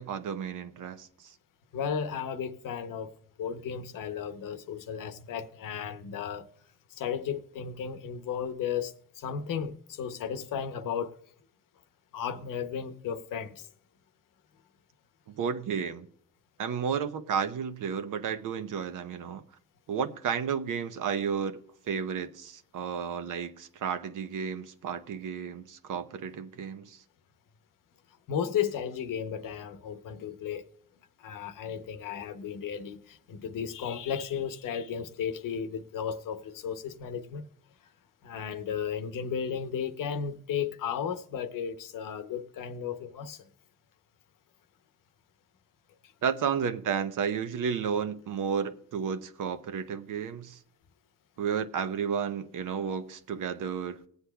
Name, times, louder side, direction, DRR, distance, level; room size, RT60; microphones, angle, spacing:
voice 1, 0.0-1.3 15.3-16.1 16.6-19.4 19.9-27.0 46.2-50.6 51.4-54.1, right 7 dB, 70° right, 0.8 m, -32 dB
voice 2, 1.7-3.1 3.4-6.5 6.9-11.1 12.1-13.7 28.3-30.6 31.2-37.4 38.2-43.4, left 7 dB, 75° left, 0.8 m, -34 dB
19.5 x 8.1 x 2.3 m
cardioid pair, 95°, 33 cm